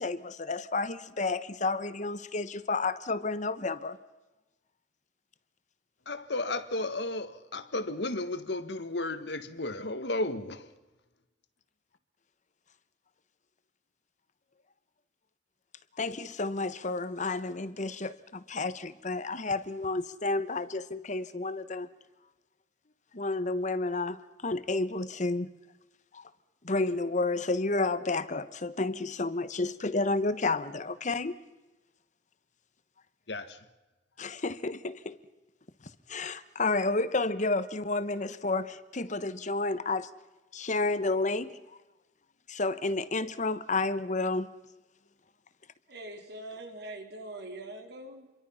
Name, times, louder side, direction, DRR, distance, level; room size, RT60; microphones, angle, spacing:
voice 1, 0.0-4.0 16.0-21.9 23.1-25.5 26.1-26.3 26.6-31.4 34.2-35.2 36.1-40.1 40.5-41.6 42.5-44.5, left 3 dB, 45° left, 1.1 m, -31 dB
voice 2, 6.1-10.7 33.3-33.7, left 2 dB, 70° left, 1.6 m, -33 dB
voice 3, 45.9-48.3, right 1 dB, 65° right, 3.8 m, -43 dB
28.0 x 23.0 x 5.8 m
head